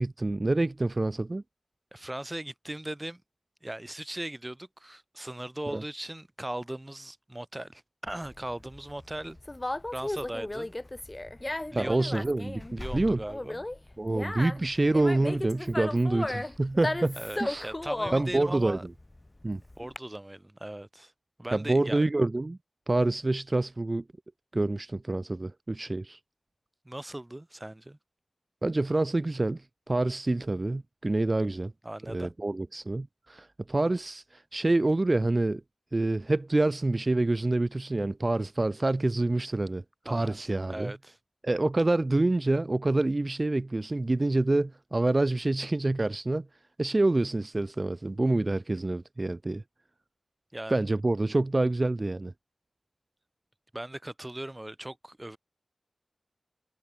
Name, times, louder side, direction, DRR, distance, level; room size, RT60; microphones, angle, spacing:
voice 1, 0.0-1.4 5.7-5.8 11.8-13.2 14.0-17.7 18.1-18.8 19.4-19.6 21.5-22.6 22.9-24.0 24.5-26.2 28.6-31.7 32.1-35.6 35.9-40.9 41.4-46.5 46.8-49.6 50.7-52.3, right 2 dB, 35° right, 3.4 m, -27 dB
voice 2, 1.9-3.2 3.6-9.4 9.9-10.7 11.7-12.2 12.8-13.6 17.2-18.8 19.8-21.1 21.4-22.0 26.8-28.0 31.8-32.3 40.1-40.4 40.7-41.2 50.5-50.7 53.7-55.4, right 1 dB, 20° right, 6.5 m, -38 dB
Conversation, 8.1-20.0, left 1 dB, 25° left, 1.7 m, -36 dB
cardioid pair, 50°, 0 cm